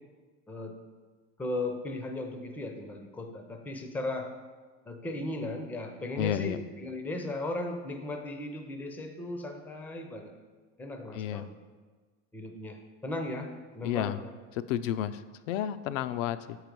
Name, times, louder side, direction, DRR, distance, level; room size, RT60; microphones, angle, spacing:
voice 1, 0.5-0.8 1.4-4.3 4.9-10.3 10.8-11.5 12.3-14.3, left 2 dB, 5° left, 4 dB, 0.4 m, -37 dB
voice 2, 6.2-6.6 11.1-11.5 13.8-14.2 14.7-15.2 15.5-16.6, left 11 dB, 85° left, 13 dB, 0.5 m, -31 dB
6.8 x 4.7 x 5.1 m, 1.4 s
supercardioid pair, 130°, 37 cm